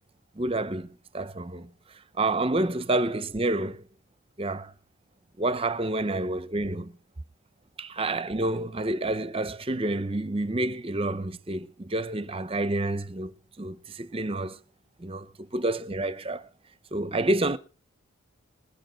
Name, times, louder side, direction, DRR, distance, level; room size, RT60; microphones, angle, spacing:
voice 1, 0.4-0.9 1.1-1.7 2.2-3.8 4.4-4.7 5.4-6.9 7.8-13.3 13.6-14.6 15.0-16.4 16.9-17.6, right 2 dB, 25° right, 0.6 m, -28 dB
20.5 x 9.1 x 4.5 m
head